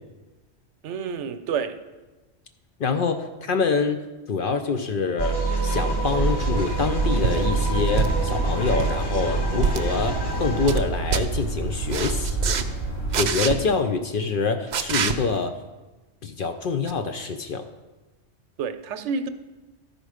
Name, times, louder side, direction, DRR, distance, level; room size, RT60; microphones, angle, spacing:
voice 1, 0.8-1.8 18.6-19.3, right 6 dB, 75° right, 10 dB, 0.9 m, -29 dB
voice 2, 2.8-4.0 4.3-12.6 13.2-15.5 16.2-17.7, left 4 dB, 60° left, 7 dB, 0.6 m, -26 dB
sound 1, 5.2-10.8, right 2 dB, 20° left, 1.0 m, -27 dB
sound 2, 6.0-13.2, right 3 dB, 85° left, 2.0 m, -28 dB
sound 3, 7.2-7.4 8.0-8.3 8.7-9.0 9.6-9.8 10.3-10.8 11.1-11.2 11.9-12.6 13.1-13.5 14.7-15.1 16.9-17.0, right 6 dB, 55° right, 0.5 m, -25 dB
12.5 x 5.1 x 4.9 m, 1.2 s
omnidirectional pair, 1.2 m